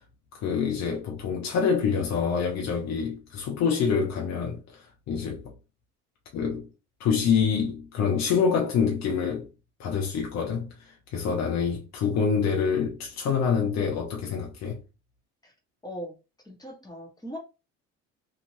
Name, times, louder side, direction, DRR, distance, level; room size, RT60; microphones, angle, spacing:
voice 1, 0.3-5.5 6.3-6.7 7.0-9.5 9.8-14.8, left 6 dB, 55° left, 0.8 m, -26 dB
voice 2, 15.8-16.2 16.4-17.4, equal, 10° left, 1.3 m, -39 dB
2.7 x 2.5 x 3.1 m
supercardioid pair, 80°, 34 cm